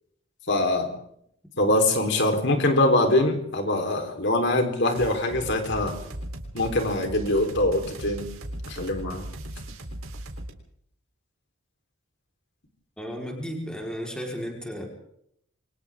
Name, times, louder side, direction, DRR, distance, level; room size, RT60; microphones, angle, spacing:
voice 1, 0.5-0.9 1.6-6.0 6.5-8.3 8.7-9.3, left 1 dB, 55° left, 4 dB, 4.1 m, -23 dB
sound 1, 4.9-10.5, right 1 dB, 80° right, 3.8 m, -38 dB
voice 2, 13.0-14.9, equal, 5° left, 0 dB, 4.4 m, -34 dB
28.5 x 24.0 x 3.8 m, 0.70 s
head